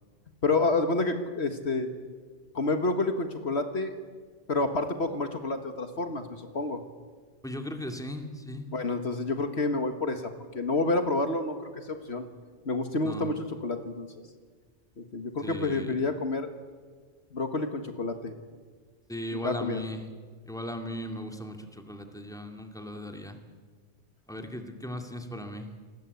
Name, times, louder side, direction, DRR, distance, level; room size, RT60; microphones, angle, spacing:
voice 1, 0.4-1.9 2.5-3.9 4.5-6.8 8.7-12.3 12.7-14.1 15.0-16.5 17.3-18.3 19.3-19.8, left 2 dB, 60° left, 7 dB, 1.9 m, -29 dB
voice 2, 7.4-8.7 13.0-13.3 15.4-16.0 19.1-20.1 20.5-23.4 24.3-25.7, left 1 dB, 5° left, 5 dB, 2.4 m, -37 dB
28.0 x 20.5 x 8.4 m, 1.5 s
omnidirectional pair, 1.2 m